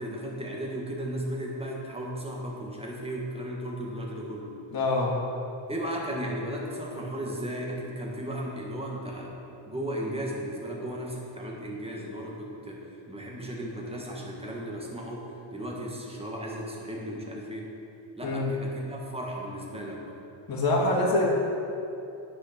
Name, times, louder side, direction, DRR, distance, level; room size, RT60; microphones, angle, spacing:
voice 1, 0.0-4.6 5.7-9.3 9.7-17.7 18.2-20.2, equal, 10° right, -2 dB, 1.7 m, -35 dB
voice 2, 4.7-5.2 18.2-18.5 20.5-21.3, left 2 dB, 45° left, -3 dB, 2.3 m, -25 dB
9.5 x 6.5 x 6.0 m, 2.7 s
cardioid pair, 120°, 49 cm